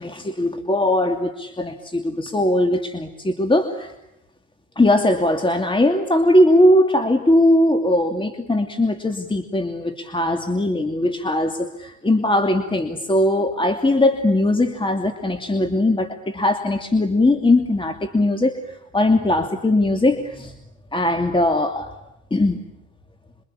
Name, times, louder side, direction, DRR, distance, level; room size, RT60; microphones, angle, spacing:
voice 1, 0.0-3.9 4.8-20.5 20.9-21.9 22.3-22.6, left 1 dB, 15° left, 6 dB, 2.7 m, -20 dB
27.5 x 24.5 x 8.7 m, 0.89 s
cardioid pair, 90°, 30 cm